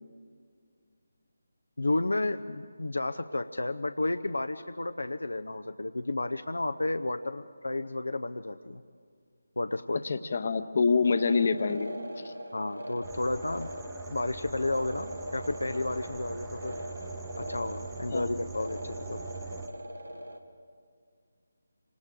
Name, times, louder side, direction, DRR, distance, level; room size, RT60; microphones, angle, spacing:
voice 1, 1.8-8.8 9.6-10.0 12.5-13.7 14.1-16.8 17.4-19.2, left 2 dB, 75° left, 9 dB, 0.6 m, -32 dB
voice 2, 10.0-11.9 12.2-12.3 18.1-18.3, left 4 dB, 45° left, 11 dB, 1.0 m, -26 dB
sound 1, 11.0-20.4, equal, 85° right, 1.8 m, -41 dB
sound 2, 13.0-19.7, right 5 dB, 5° right, 0.8 m, -44 dB
27.5 x 25.5 x 3.8 m, 2.1 s
figure-of-eight pair, 155°, 0 cm